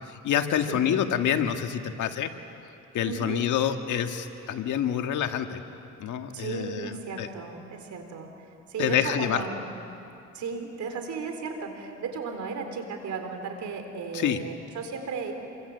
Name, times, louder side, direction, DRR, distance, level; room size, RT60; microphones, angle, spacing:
voice 1, 0.0-2.3 2.9-5.6 6.0-7.3 8.8-9.4 14.1-14.4, left 9 dB, 80° left, 6 dB, 1.8 m, -27 dB
voice 2, 0.7-1.0 3.0-3.4 6.3-8.3 8.7-9.8 10.3-15.3, right 5 dB, 70° right, 5 dB, 4.0 m, -35 dB
27.5 x 24.5 x 8.0 m, 2.7 s
cardioid pair, 90°, 30 cm